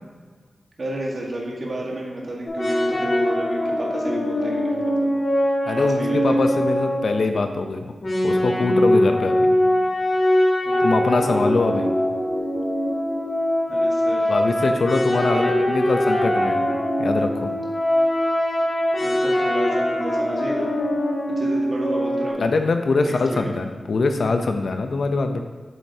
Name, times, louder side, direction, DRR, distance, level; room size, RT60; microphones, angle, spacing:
voice 1, 0.8-5.1 5.8-6.4 9.1-9.2 10.6-10.9 13.7-14.3 15.3-15.7 19.0-20.7 21.4-22.4 23.0-23.5, right 1 dB, 45° right, -2 dB, 1.6 m, -31 dB
sound 1, 2.5-7.5 8.0-22.3, left 1 dB, 50° left, 2.1 m, -22 dB
voice 2, 5.6-7.9 8.2-9.5 10.8-11.9 14.3-16.7 17.0-17.5 22.4-25.4, left 3 dB, 65° left, 6 dB, 0.6 m, -23 dB
8.1 x 7.3 x 2.8 m, 1.5 s
wide cardioid pair, 120°, 0 cm